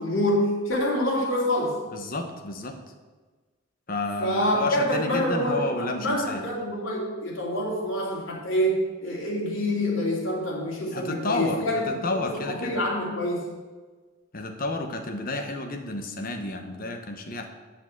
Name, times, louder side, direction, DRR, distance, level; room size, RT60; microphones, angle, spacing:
voice 1, 0.0-1.8 4.2-13.5, equal, 85° left, -4 dB, 2.8 m, -26 dB
voice 2, 1.9-2.8 3.9-6.5 10.9-12.8 14.3-17.5, left 2 dB, 45° left, 5 dB, 1.1 m, -31 dB
8.1 x 5.8 x 7.3 m, 1.3 s
head